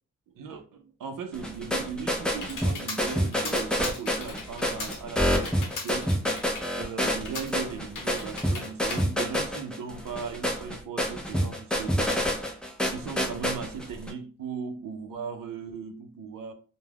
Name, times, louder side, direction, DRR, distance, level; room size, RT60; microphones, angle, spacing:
voice 1, 0.3-6.1 6.8-12.4 12.9-16.5, right 6 dB, 85° right, 0.5 m, -38 dB
sound 1, 1.3-14.1, equal, 5° left, 0.4 m, -28 dB
Computer keyboard, 1.5-10.0, left 4 dB, 70° left, 0.8 m, -40 dB
2.3 x 2.2 x 3.3 m
wide cardioid pair, 155°, 32 cm